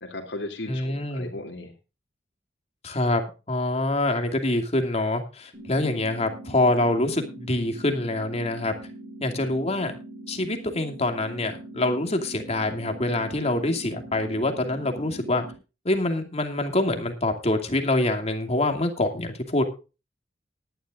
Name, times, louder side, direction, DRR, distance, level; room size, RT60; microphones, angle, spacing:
voice 1, 0.0-1.7, left 2 dB, 90° left, 1 dB, 2.9 m, -36 dB
voice 2, 0.7-1.3 2.8-8.7 9.2-9.9 10.3-15.4 15.8-19.6, left 2 dB, 40° left, 5 dB, 2.6 m, -25 dB
sound 1, 5.5-15.5, right 1 dB, 45° right, 5.9 m, -42 dB
19.0 x 11.5 x 2.5 m, 0.31 s
head